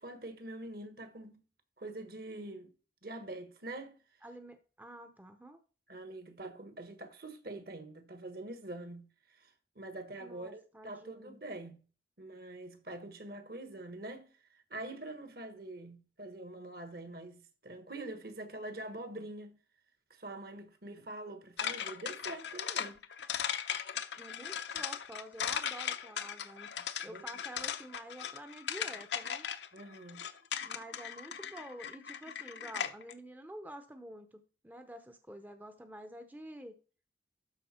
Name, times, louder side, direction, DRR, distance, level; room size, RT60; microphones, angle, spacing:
voice 1, 0.0-1.4 1.8-2.7 3.0-4.0 5.9-11.8 12.2-19.6 20.1-23.0 27.0-27.3 29.7-30.2, right 2 dB, 55° right, 1.4 m, -45 dB
voice 2, 4.2-5.6 10.2-11.4 24.1-26.7 27.0-29.5 30.6-36.8, right 1 dB, 10° right, 0.7 m, -49 dB
sound 1, 21.6-33.1, left 8 dB, 70° left, 0.7 m, -38 dB
12.0 x 4.8 x 4.3 m
head